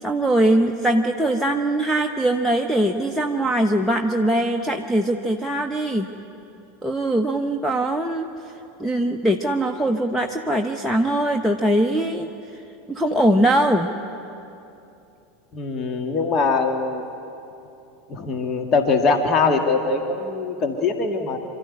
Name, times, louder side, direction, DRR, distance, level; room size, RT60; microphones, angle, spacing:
voice 1, 0.0-6.1 6.8-8.3 8.8-12.6 12.9-13.9, right 1 dB, ahead, 4 dB, 1.0 m, -21 dB
voice 2, 15.5-17.1 18.1-21.4, left 4 dB, 35° left, 5 dB, 1.9 m, -22 dB
26.0 x 13.0 x 9.8 m, 2.8 s
figure-of-eight pair, 80°, 0 cm